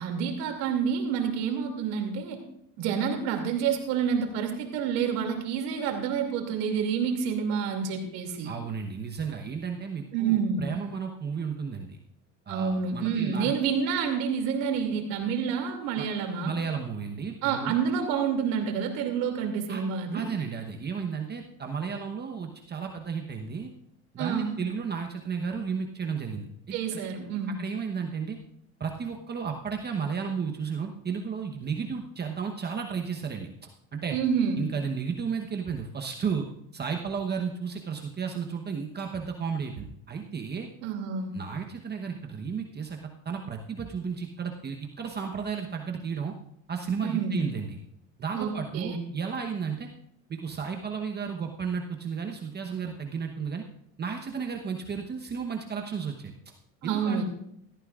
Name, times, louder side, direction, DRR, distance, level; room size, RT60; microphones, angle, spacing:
voice 1, 0.0-2.4 2.8-8.5 10.1-10.7 12.5-16.6 17.4-20.3 24.2-24.6 26.7-27.6 34.1-34.6 40.8-41.3 47.0-47.4 48.4-49.0 56.8-57.2, right 6 dB, 80° right, 3 dB, 2.7 m, -28 dB
voice 2, 8.4-12.0 12.5-13.5 15.9-16.1 16.4-17.8 19.7-19.8 20.1-23.7 24.1-27.0 27.6-28.4 28.8-33.5 33.9-34.2 34.6-36.5 36.7-40.7 41.3-43.0 43.2-46.3 46.7-47.8 48.2-49.9 50.3-53.6 54.0-56.3 56.8-57.2, right 6 dB, 30° right, 3 dB, 1.1 m, -33 dB
17.5 x 13.5 x 2.5 m, 0.73 s
supercardioid pair, 105°, 34 cm